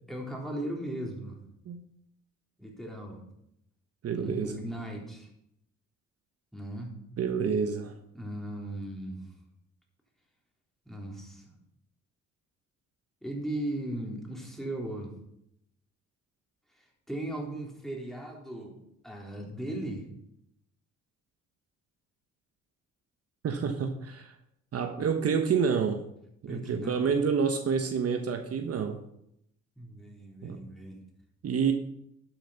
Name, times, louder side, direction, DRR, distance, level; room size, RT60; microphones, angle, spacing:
voice 1, 0.1-1.4 2.6-3.2 4.2-5.3 6.5-6.9 8.1-9.2 10.9-11.5 13.2-15.1 16.8-18.8 19.0-20.1 26.5-27.1 29.8-31.0, right 1 dB, ahead, -1 dB, 3.7 m, -37 dB
voice 2, 4.0-4.6 7.2-7.9 23.4-24.3 24.7-26.0 26.4-29.0 30.4-30.6 31.4-31.7, right 6 dB, 55° right, 6 dB, 1.2 m, -28 dB
12.0 x 7.6 x 5.7 m, 0.77 s
cardioid pair, 90°, 30 cm